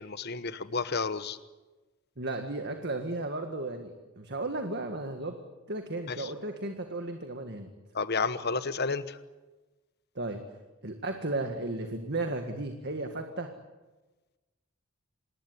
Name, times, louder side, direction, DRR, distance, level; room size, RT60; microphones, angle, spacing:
voice 1, 0.0-1.4 6.1-6.3 7.9-9.2, left 4 dB, 45° left, 13 dB, 1.1 m, -31 dB
voice 2, 2.2-5.4 5.7-7.7 10.2-10.4 10.8-13.5, right 2 dB, 50° right, 5 dB, 1.9 m, -34 dB
27.0 x 20.0 x 9.4 m, 1.2 s
head